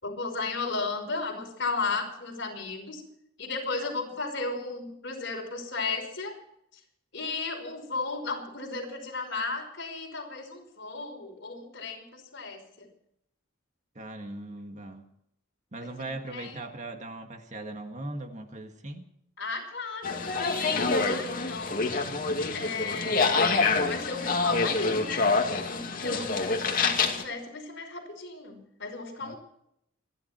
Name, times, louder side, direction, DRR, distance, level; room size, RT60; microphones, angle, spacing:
voice 1, 0.0-3.0 3.4-6.3 7.1-12.9 15.8-16.5 19.4-21.8 22.5-25.3 25.7-29.4, left 3 dB, 60° left, 2 dB, 5.4 m, -35 dB
voice 2, 14.0-15.1 15.7-19.1 29.2-29.3, right 2 dB, 35° right, 5 dB, 1.9 m, -39 dB
sound 1, 20.0-27.2, left 4 dB, 45° left, 2.5 m, -26 dB
28.0 x 11.5 x 4.5 m, 0.74 s
head